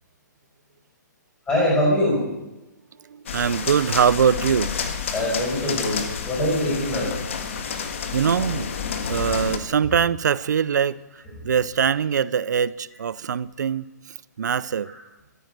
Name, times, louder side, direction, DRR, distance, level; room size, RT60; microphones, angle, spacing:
voice 1, 1.5-2.2 5.1-7.1 9.3-9.4 14.8-14.9, left 1 dB, 5° left, 5.8 m, -23 dB
voice 2, 3.1-4.7 8.1-8.7 9.1-13.9 14.4-14.9, right 7 dB, 65° right, 0.6 m, -22 dB
sound 1, 3.3-9.6, left 6 dB, 40° left, 1.7 m, -30 dB
14.0 x 9.4 x 9.3 m
hypercardioid pair, 180°, 10 cm